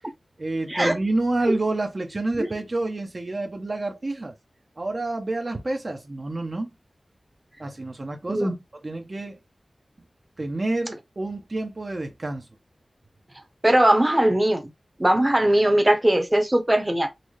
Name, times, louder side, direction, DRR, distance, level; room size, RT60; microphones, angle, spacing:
voice 1, 0.4-4.3 4.8-6.7 7.6-8.5 8.8-9.4 10.4-12.5, right 2 dB, 50° right, 0.8 m, -28 dB
voice 2, 13.6-14.7 15.0-17.1, right 1 dB, 20° right, 0.8 m, -20 dB
4.0 x 2.1 x 3.1 m
wide cardioid pair, 50°, 0 cm